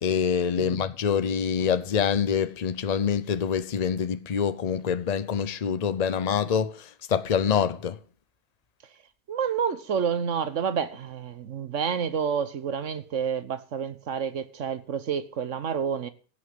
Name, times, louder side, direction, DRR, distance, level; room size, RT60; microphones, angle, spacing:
voice 1, 0.0-8.0, left 7 dB, 75° left, 0.3 m, -26 dB
voice 2, 9.3-16.1, right 7 dB, 55° right, 1.2 m, -29 dB
16.5 x 6.4 x 7.2 m
omnidirectional pair, 1.7 m